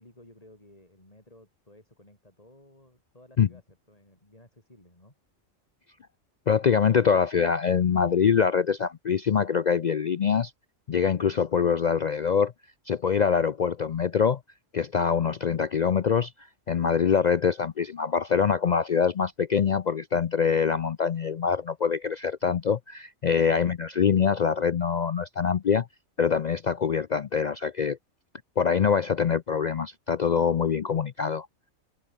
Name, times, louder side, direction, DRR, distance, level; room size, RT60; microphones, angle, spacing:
voice 1, 0.0-5.2, left 1 dB, 30° left, 4.9 m, -55 dB
voice 2, 6.5-10.5 10.9-12.5 12.9-14.4 14.7-25.9 26.2-28.0 28.6-31.5, left 6 dB, 60° left, 0.4 m, -24 dB
omnidirectional pair, 1.4 m